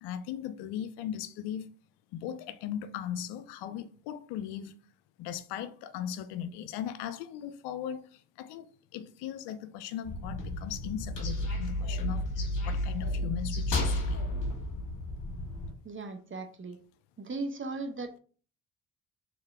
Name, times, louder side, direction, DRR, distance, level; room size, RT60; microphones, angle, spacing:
voice 1, 0.0-1.7 2.1-4.7 5.2-8.7 8.9-14.2, left 9 dB, 80° left, 0.5 m, -38 dB
sound 1, 10.0-15.7, left 1 dB, 50° left, 1.9 m, -32 dB
voice 2, 15.8-16.8 17.2-18.2, right 3 dB, 30° right, 1.0 m, -37 dB
3.6 x 3.5 x 3.4 m
supercardioid pair, 55°, 39 cm